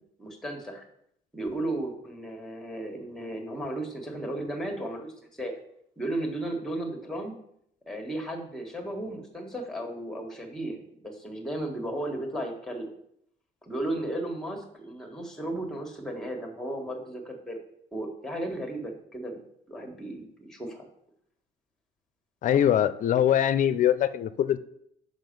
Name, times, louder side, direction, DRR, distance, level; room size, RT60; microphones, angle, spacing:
voice 1, 0.2-0.8 1.3-5.5 6.0-7.3 7.9-12.9 13.6-17.6 17.9-19.4 19.7-20.8, right 1 dB, 5° left, 4 dB, 1.5 m, -35 dB
voice 2, 22.4-24.6, left 10 dB, 50° left, 14 dB, 0.5 m, -23 dB
6.1 x 5.2 x 5.3 m, 0.72 s
cardioid pair, 110°, 17 cm